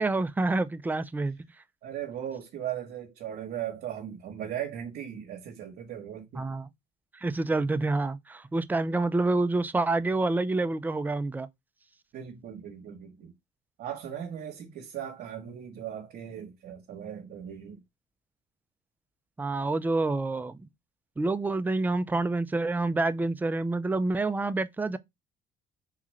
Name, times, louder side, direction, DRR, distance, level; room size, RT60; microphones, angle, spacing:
voice 1, 0.0-1.4 6.3-6.7 7.1-11.5 19.4-20.7 21.2-25.0, right 2 dB, 10° right, 0.3 m, -27 dB
voice 2, 1.8-6.5 12.1-13.3 13.8-17.8, right 10 dB, 65° right, 0.9 m, -38 dB
3.7 x 2.4 x 3.1 m
cardioid pair, 110°, 17 cm